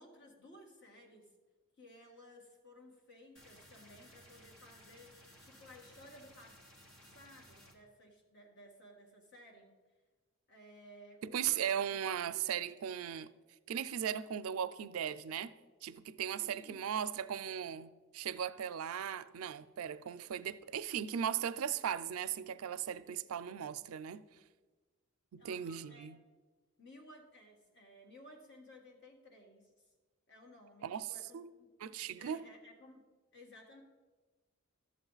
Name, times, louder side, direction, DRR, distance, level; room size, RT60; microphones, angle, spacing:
voice 1, 0.0-1.3 1.8-6.6 7.1-9.7 10.5-12.0 16.4-16.8 25.4-26.1 26.8-29.9 30.3-31.7 32.2-33.0 33.3-33.8, left 1 dB, 55° left, 1.6 m, -57 dB
sound 1, 3.4-7.8, equal, 70° left, 1.3 m, -59 dB
voice 2, 11.2-13.3 13.7-15.5 15.8-24.2 25.3-26.2 30.8-31.5 31.8-32.4, right 9 dB, 90° right, 0.4 m, -38 dB
12.0 x 7.5 x 3.9 m
head